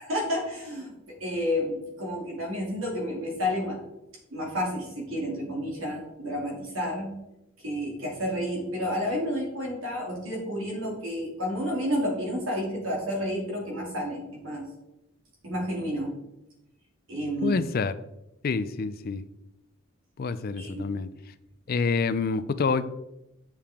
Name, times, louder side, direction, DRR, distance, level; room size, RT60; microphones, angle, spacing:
voice 1, 0.0-3.8 4.3-7.1 7.6-14.6 15.4-16.1 17.1-17.6 20.6-20.9, equal, 75° right, 2.5 m, -30 dB
voice 2, 17.4-17.9 18.4-19.2 20.2-21.1 21.7-22.9, left 4 dB, 45° left, 0.4 m, -27 dB
7.4 x 6.7 x 3.5 m
head